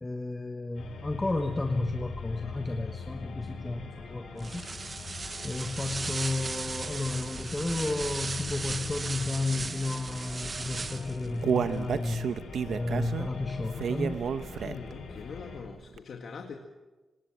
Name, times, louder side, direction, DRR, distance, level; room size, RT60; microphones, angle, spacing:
voice 1, 0.0-4.6 5.4-12.3 12.7-14.2, left 2 dB, 15° left, 4 dB, 1.2 m, -32 dB
sound 1, 0.7-15.6, left 4 dB, 75° left, 6.7 m, -42 dB
sound 2, 4.4-11.3, right 4 dB, 30° right, 0.8 m, -37 dB
Human voice, 10.8-15.0 15.4-15.5 16.0-16.1, right 7 dB, 65° right, 1.0 m, -30 dB
voice 2, 14.5-16.5, left 5 dB, 55° left, 3 dB, 1.9 m, -42 dB
26.5 x 19.5 x 7.4 m, 1.2 s
wide cardioid pair, 175°, 0 cm